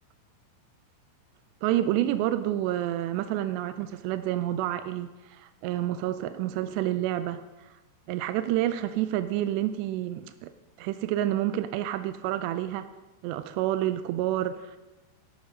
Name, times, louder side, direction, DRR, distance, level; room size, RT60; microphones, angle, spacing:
voice 1, 1.6-7.8 8.1-10.5 10.8-12.9 13.2-14.8, right 13 dB, 90° right, 11 dB, 2.4 m, -29 dB
12.5 x 12.0 x 5.2 m, 1.1 s
omnidirectional pair, 5.5 m